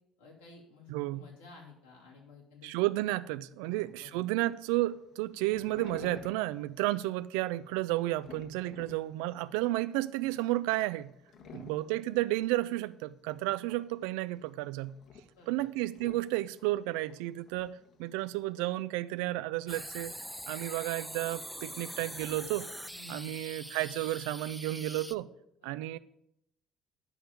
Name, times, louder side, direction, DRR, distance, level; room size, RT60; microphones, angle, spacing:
voice 1, 0.2-2.7 3.0-3.1 3.6-4.3 5.3-5.4 11.3-12.0 13.5-13.6 15.4-15.7 22.9-23.4 25.6-25.7, left 3 dB, 85° left, 2.6 m, -54 dB
voice 2, 0.9-1.3 2.6-11.1 11.5-15.0 15.5-20.2 20.5-22.7 23.1-25.3 25.6-26.0, right 17 dB, 70° right, 0.4 m, -32 dB
sound 1, 3.6-18.8, left 5 dB, 55° left, 1.2 m, -54 dB
sound 2, 19.7-25.1, equal, ahead, 0.6 m, -43 dB
9.2 x 5.5 x 7.3 m
hypercardioid pair, 55°, 0 cm